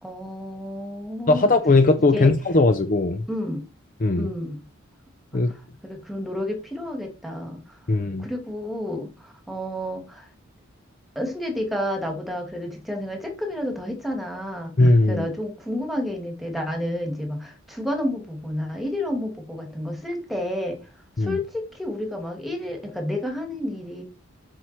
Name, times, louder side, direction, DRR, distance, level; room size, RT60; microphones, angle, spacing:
voice 1, 0.0-1.5 2.1-2.3 3.3-3.6 4.2-4.6 5.5-5.6 5.8-7.6 8.2-10.3 11.1-20.8 21.2-24.0, left 1 dB, ahead, 2.5 m, -30 dB
voice 2, 1.3-3.2 4.0-4.3 5.3-5.5 7.9-8.3 14.8-15.3 21.2-21.4, left 2 dB, 40° left, 0.6 m, -19 dB
7.9 x 6.4 x 4.5 m
head